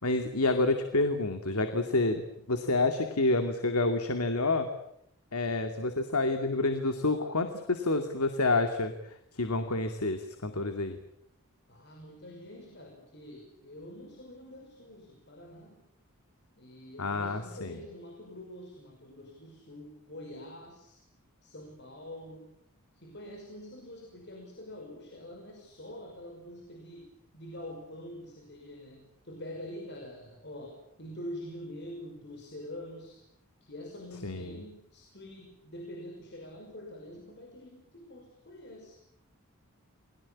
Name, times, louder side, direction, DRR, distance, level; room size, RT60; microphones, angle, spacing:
voice 1, 0.0-4.7 5.3-8.9 9.3-11.0 17.0-17.8 34.2-34.6, left 2 dB, 85° left, 7 dB, 2.5 m, -28 dB
voice 2, 11.7-15.9 16.6-21.1 21.4-22.6 22.9-33.2 33.6-39.0, left 1 dB, 50° left, 3 dB, 5.6 m, -45 dB
29.5 x 22.0 x 8.6 m, 0.75 s
head